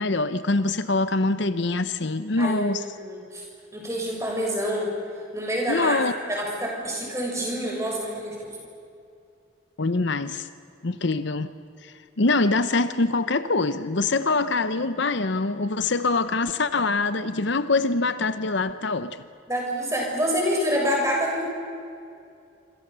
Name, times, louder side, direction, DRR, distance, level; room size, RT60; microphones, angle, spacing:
voice 1, 0.0-2.8 5.7-6.1 9.8-10.5 10.8-11.5 11.8-19.2, left 3 dB, 60° left, 12 dB, 0.8 m, -24 dB
voice 2, 2.4-3.4 3.7-4.9 5.3-6.0 6.3-8.6 19.5-21.4, equal, 15° right, -1 dB, 6.7 m, -27 dB
26.5 x 26.0 x 7.0 m, 2.5 s
head